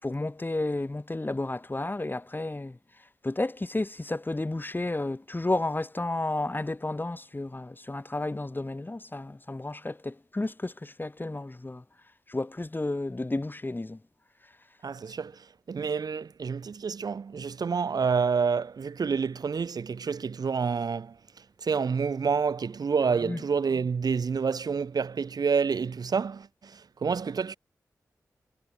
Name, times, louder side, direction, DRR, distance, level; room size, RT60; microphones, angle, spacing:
voice 1, 0.0-2.8 3.2-11.8 12.3-14.0 23.2-23.4, left 2 dB, 30° left, 4.7 m, -32 dB
voice 2, 14.8-15.3 15.7-21.1 21.6-27.6, right 5 dB, 70° right, 2.1 m, -28 dB
cardioid pair, 45°, 7 cm